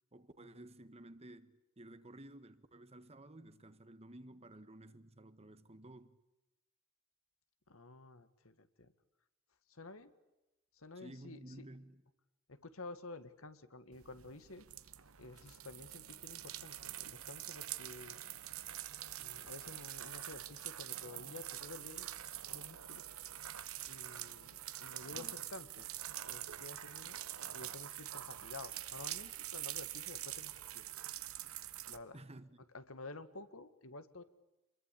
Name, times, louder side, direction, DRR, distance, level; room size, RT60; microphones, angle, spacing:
voice 1, 0.1-6.2 10.9-12.0 25.1-25.3 32.1-32.6, right 1 dB, 30° right, 1.5 m, -54 dB
voice 2, 7.7-8.9 9.7-10.1 10.7-11.7 12.5-14.7 15.2-18.2 19.2-22.1 22.5-23.1 23.9-25.9 26.2-27.2 27.5-30.9 31.9-32.2 32.7-34.2, left 3 dB, 70° left, 1.9 m, -51 dB
sound 1, 13.9-32.0, right 13 dB, 85° right, 1.3 m, -45 dB
27.0 x 22.5 x 8.6 m
head